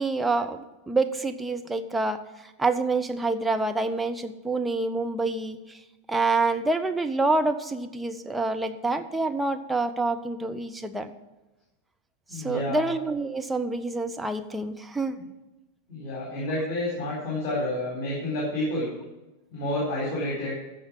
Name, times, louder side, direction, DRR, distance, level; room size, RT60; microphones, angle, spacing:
voice 1, 0.0-2.2 2.6-5.8 6.1-11.1 12.3-15.2, right 3 dB, 5° right, 6 dB, 0.8 m, -27 dB
voice 2, 12.3-12.9 15.9-18.9 19.5-20.5, left 1 dB, 40° left, -4 dB, 4.1 m, -29 dB
14.5 x 5.0 x 7.3 m, 1.1 s
figure-of-eight pair, 90°, 0 cm